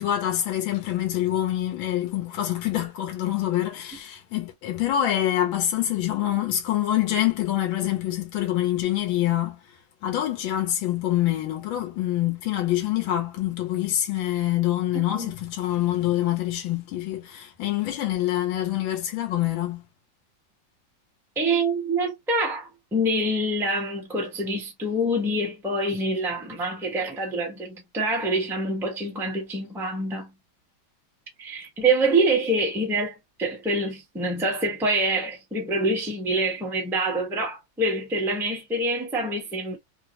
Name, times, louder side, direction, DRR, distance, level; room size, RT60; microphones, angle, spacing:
voice 1, 0.0-9.6 10.0-19.8, left 13 dB, 85° left, 1.5 m, -26 dB
voice 2, 14.9-15.3 21.4-30.3 31.4-39.8, right 2 dB, ahead, 0.8 m, -26 dB
3.7 x 2.0 x 2.8 m
omnidirectional pair, 2.1 m